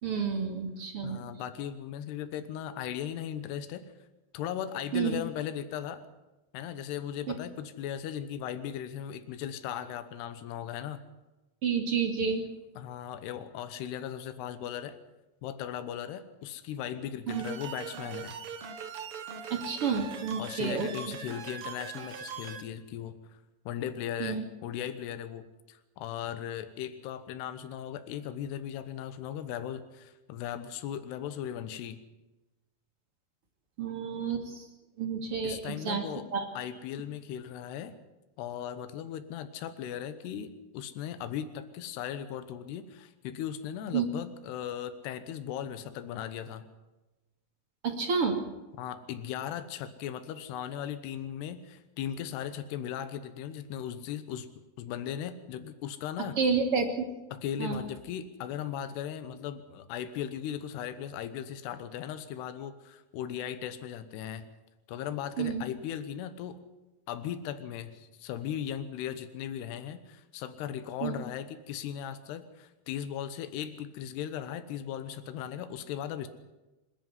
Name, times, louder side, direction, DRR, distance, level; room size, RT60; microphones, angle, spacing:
voice 1, 0.0-1.2 4.9-5.2 11.6-12.4 17.3-17.4 19.5-20.9 24.2-24.4 33.8-34.6 35.0-36.0 36.3-36.4 43.9-44.0 47.8-48.4 56.4-57.1 57.6-57.8 65.4-65.6 71.0-71.2, right 6 dB, 40° right, 4 dB, 3.1 m, -30 dB
voice 2, 1.0-3.8 4.3-6.0 6.5-11.0 12.8-15.0 15.4-18.4 20.4-23.4 23.7-32.0 35.4-36.3 36.5-37.9 38.4-46.7 48.8-54.5 54.8-56.4 57.3-64.5 64.9-66.6 67.1-76.3, left 10 dB, 85° left, 10 dB, 3.2 m, -37 dB
sound 1, 17.3-22.6, right 6 dB, 55° right, 1.7 m, -41 dB
26.5 x 11.0 x 9.7 m, 1.1 s
omnidirectional pair, 4.7 m